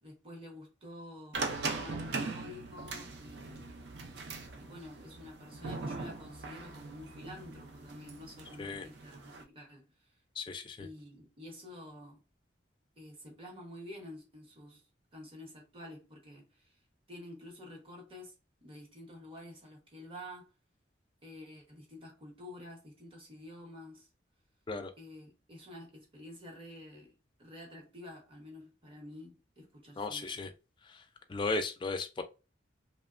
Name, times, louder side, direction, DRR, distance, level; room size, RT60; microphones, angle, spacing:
voice 1, 0.0-1.5 1.7-3.7 4.6-10.2 10.8-12.2 13.0-14.9 15.1-16.8 17.1-18.3 18.6-20.5 21.2-24.1 25.0-30.3, left 1 dB, 30° right, 0.9 m, -49 dB
sound 1, 1.3-9.4, right 3 dB, 60° right, 0.5 m, -40 dB
voice 2, 10.4-10.9 24.7-24.9 30.0-30.5 30.9-31.0 31.3-32.2, left 3 dB, 25° left, 0.3 m, -35 dB
2.9 x 2.1 x 2.4 m
head